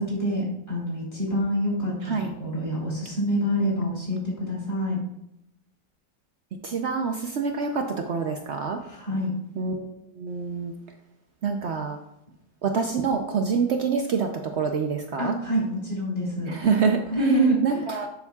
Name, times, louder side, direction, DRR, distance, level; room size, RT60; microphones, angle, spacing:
voice 1, 0.0-5.0 8.8-9.3 15.2-16.5 17.1-17.8, right 1 dB, 25° left, -5 dB, 3.5 m, -26 dB
voice 2, 6.6-8.8 9.6-9.9 10.2-10.7 11.4-12.0 12.6-14.3 14.6-15.3 16.5-17.0 17.6-18.1, right 5 dB, 85° right, 4 dB, 0.6 m, -26 dB
11.5 x 7.0 x 2.4 m, 0.82 s
omnidirectional pair, 2.0 m